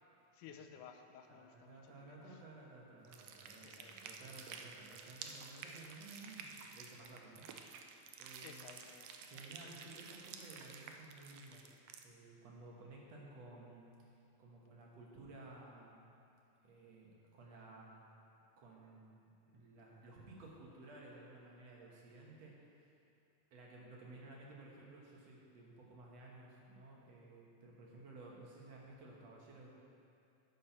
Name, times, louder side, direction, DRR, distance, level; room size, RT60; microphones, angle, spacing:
voice 1, 0.3-2.4 3.6-4.5 8.2-9.5, left 7 dB, 85° left, 5 dB, 2.2 m, -57 dB
voice 2, 1.3-7.9 8.2-8.8 9.2-16.0 16.6-18.0 18.6-19.2 19.5-22.9 23.5-29.7, right 2 dB, 60° right, -3 dB, 2.4 m, -55 dB
sound 1, 3.0-12.0, right 6 dB, 85° right, 1.3 m, -52 dB
10.5 x 7.5 x 5.5 m, 2.7 s
omnidirectional pair, 3.5 m